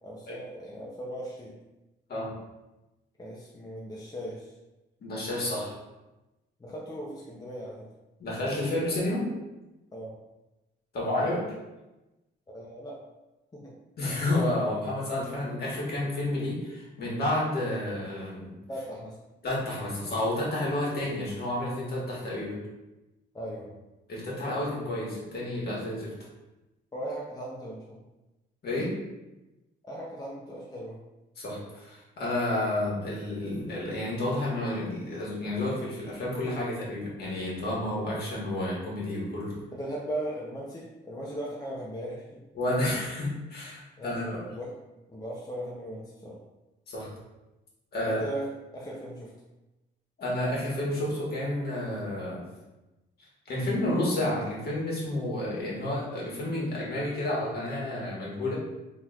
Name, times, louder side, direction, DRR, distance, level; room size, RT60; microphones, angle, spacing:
voice 1, 0.0-1.5 3.2-4.5 6.6-7.9 9.9-10.2 12.5-13.0 13.5-13.7 18.7-19.2 23.3-23.7 26.9-28.0 29.8-31.0 39.7-42.4 44.0-44.7 45.1-46.4 48.0-49.3, right 1 dB, 20° left, -4 dB, 0.6 m, -38 dB
voice 2, 5.0-5.8 8.2-9.3 10.9-11.4 14.0-18.5 19.4-22.6 24.1-26.1 28.6-28.9 31.4-39.5 42.5-44.4 46.9-47.1 47.9-48.2 50.2-52.4 53.5-58.6, left 1 dB, 50° left, -5 dB, 1.5 m, -30 dB
3.8 x 2.9 x 2.4 m, 1.0 s
cardioid pair, 90°, 20 cm